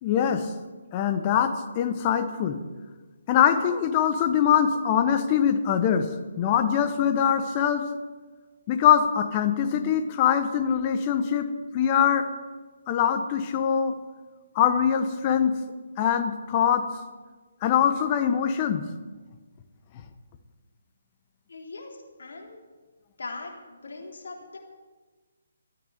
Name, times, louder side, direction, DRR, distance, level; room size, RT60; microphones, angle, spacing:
voice 1, 0.0-0.5 0.9-2.6 3.3-6.1 6.4-7.9 8.7-12.3 12.9-14.0 14.5-15.6 16.0-16.9 17.6-18.8, left 8 dB, 30° left, 8 dB, 1.1 m, -23 dB
voice 2, 21.5-22.6 23.2-24.6, left 3 dB, 70° left, 0 dB, 3.5 m, -40 dB
13.5 x 9.3 x 8.3 m, 1.3 s
figure-of-eight pair, 145°, 0 cm